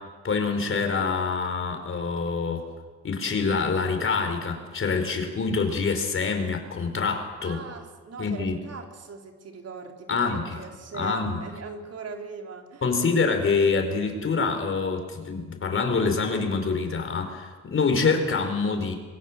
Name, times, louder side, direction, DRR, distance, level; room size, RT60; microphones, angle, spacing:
voice 1, 0.2-2.6 3.0-7.6 8.2-8.6 10.1-10.6 10.9-11.4 12.8-19.0, left 4 dB, 45° left, 5 dB, 5.0 m, -26 dB
voice 2, 7.4-12.8, right 5 dB, 55° right, 3 dB, 3.7 m, -40 dB
25.5 x 23.0 x 7.6 m, 1.4 s
cardioid pair, 90°, 30 cm